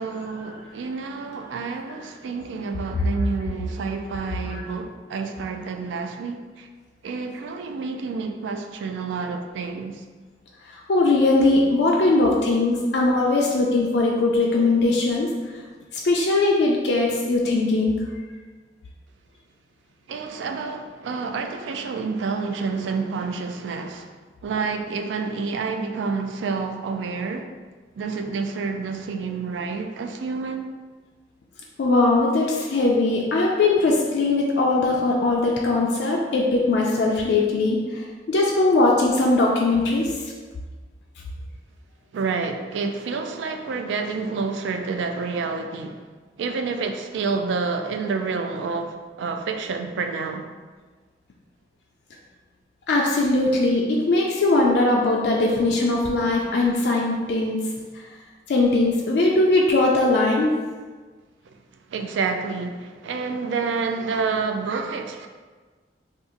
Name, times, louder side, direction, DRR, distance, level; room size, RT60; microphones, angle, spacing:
voice 1, 0.0-6.7 7.0-10.0 20.1-24.2 24.4-27.5 28.0-30.7 42.1-46.0 46.4-50.5 61.9-65.3, right 4 dB, 90° right, 0.3 m, -29 dB
voice 2, 10.9-15.3 16.0-18.0 31.8-37.8 38.3-40.1 52.9-57.6 58.5-60.5, left 2 dB, 65° left, 0.4 m, -20 dB
2.6 x 2.4 x 3.7 m
head